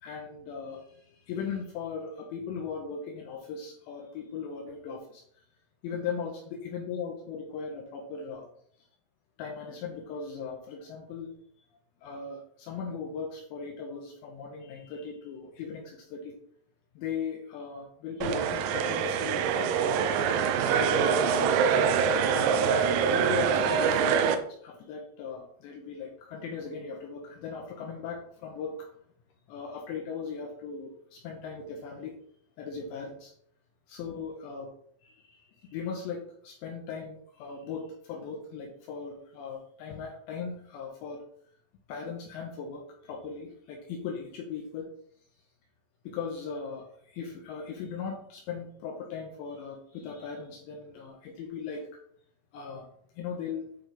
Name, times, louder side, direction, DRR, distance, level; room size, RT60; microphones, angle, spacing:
voice 1, 0.0-5.2 5.8-8.5 9.4-11.3 12.0-16.3 17.0-20.4 20.7-21.8 22.3-22.7 23.0-28.9 29.5-32.2 32.6-33.3 33.9-34.7 35.0-41.2 41.9-44.9 46.0-51.9 52.5-52.9 53.2-53.7, left 5 dB, 75° left, 0 dB, 2.9 m, -38 dB
sound 1, 18.2-24.4, right 7 dB, 85° right, 3.1 m, -25 dB
9.2 x 3.9 x 3.4 m, 0.63 s
omnidirectional pair, 5.5 m